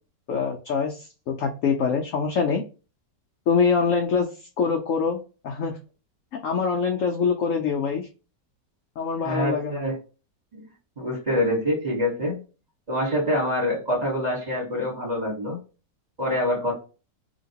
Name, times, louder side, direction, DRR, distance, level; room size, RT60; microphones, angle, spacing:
voice 1, 0.3-2.6 3.5-5.2 5.4-5.8 6.4-8.1 9.0-9.8, left 5 dB, 70° left, 3 dB, 0.7 m, -24 dB
voice 2, 9.2-10.0 10.5-10.6 11.0-12.4 12.9-15.6 16.2-16.7, left 1 dB, 25° right, -3 dB, 1.3 m, -25 dB
2.9 x 2.9 x 2.8 m, 0.33 s
omnidirectional pair, 1.9 m